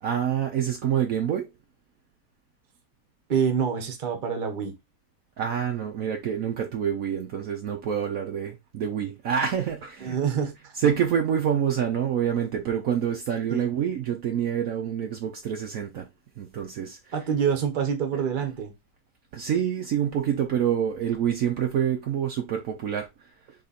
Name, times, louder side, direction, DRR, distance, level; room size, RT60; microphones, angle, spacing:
voice 1, 0.0-1.5 5.4-10.3 10.7-16.1 16.4-17.3 19.3-23.1, right 8 dB, 85° right, 0.7 m, -27 dB
voice 2, 3.3-4.7 10.0-10.7 13.5-13.7 17.1-18.7, right 7 dB, 45° right, 0.6 m, -26 dB
4.0 x 3.3 x 4.0 m
omnidirectional pair, 2.3 m